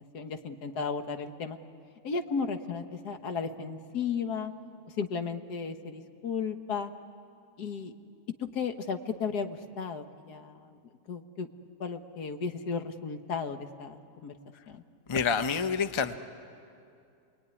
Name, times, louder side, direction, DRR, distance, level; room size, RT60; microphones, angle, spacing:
voice 1, 0.1-1.6 2.0-4.5 5.0-6.9 7.6-7.9 8.5-10.7 11.1-11.5 11.8-14.3 14.7-14.8, left 5 dB, 80° left, 7 dB, 1.8 m, -34 dB
voice 2, 15.1-16.2, left 6 dB, 25° left, 9 dB, 0.7 m, -27 dB
28.5 x 21.0 x 9.8 m, 2.5 s
omnidirectional pair, 1.7 m